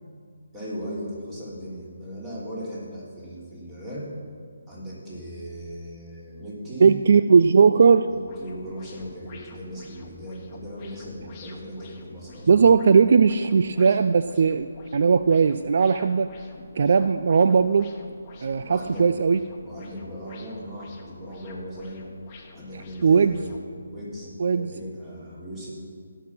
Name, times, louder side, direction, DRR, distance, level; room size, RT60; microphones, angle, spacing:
voice 1, 0.5-4.1 4.7-7.0 8.1-12.7 18.6-19.1 19.6-22.1 22.5-23.6 23.9-25.7, equal, 15° right, -7 dB, 3.3 m, -37 dB
voice 2, 6.8-8.1 12.5-14.7 14.9-16.3 16.8-17.9 18.4-19.4 23.0-23.4 24.4-24.7, right 5 dB, 55° right, 11 dB, 0.3 m, -18 dB
sound 1, 8.2-23.7, left 4 dB, 25° left, 1.3 m, -49 dB
17.0 x 6.0 x 6.0 m, 2.2 s
figure-of-eight pair, 155°, 0 cm